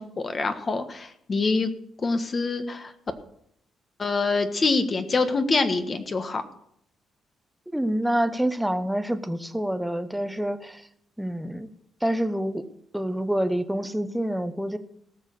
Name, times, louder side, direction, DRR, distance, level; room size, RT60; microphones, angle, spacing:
voice 1, 0.0-1.7 2.0-2.9 4.0-6.4, left 3 dB, 35° left, 8 dB, 1.4 m, -25 dB
voice 2, 7.7-10.8 11.2-11.7 12.0-12.6 12.9-14.8, right 1 dB, 5° right, 10 dB, 1.0 m, -27 dB
18.0 x 6.5 x 6.5 m, 0.72 s
cardioid pair, 90°, 0 cm